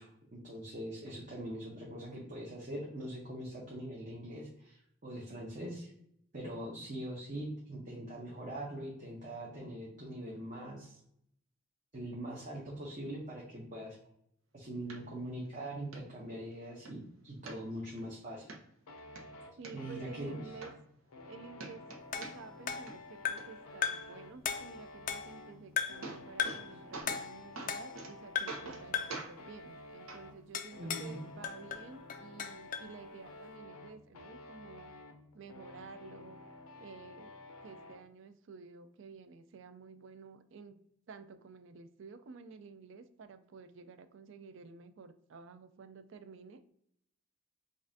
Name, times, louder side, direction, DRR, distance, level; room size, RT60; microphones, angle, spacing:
voice 1, 0.0-5.9 6.3-11.0 11.9-14.0 14.5-18.5 19.7-20.4 30.8-31.2, right 1 dB, 35° right, -4 dB, 0.8 m, -42 dB
sound 1, 14.9-15.0 15.5-15.6 15.9-16.0 16.5-16.9 17.5-18.0 18.5-18.6 19.0-19.7 20.3-20.4 20.6-21.3 21.6-22.6 22.9-23.4 25.5-25.6 25.8-26.6 26.9-27.3 27.6-28.1 28.5-28.8 29.1-29.3 30.1-30.2 31.1-31.2, right 3 dB, 75° right, 0.8 m, -44 dB
sound 2, 18.9-38.0, left 2 dB, 90° left, 0.6 m, -52 dB
voice 2, 19.6-20.7 21.3-21.8 22.1-34.9 35.3-36.4 36.8-37.3 37.6-40.7 41.1-46.6, right 5 dB, 60° right, 10 dB, 0.4 m, -52 dB
sound 3, 22.1-23.6 23.8-24.2 24.4-25.4 25.8-26.1 26.4-26.7 27.1-28.1 28.3-28.7 28.9-29.3 30.5-31.1 31.4-32.9, left 8 dB, 40° left, 0.3 m, -37 dB
5.3 x 2.5 x 2.6 m, 0.72 s
head